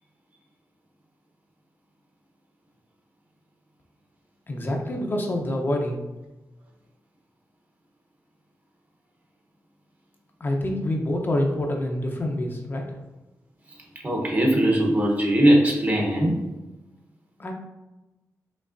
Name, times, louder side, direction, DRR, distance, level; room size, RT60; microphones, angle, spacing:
voice 1, 4.5-6.0 10.4-13.0 17.4-17.5, left 1 dB, 35° left, 1 dB, 0.6 m, -26 dB
voice 2, 14.0-16.3, right 1 dB, 30° right, 0 dB, 0.9 m, -20 dB
5.2 x 3.2 x 2.6 m, 1.0 s
wide cardioid pair, 125°, 6 cm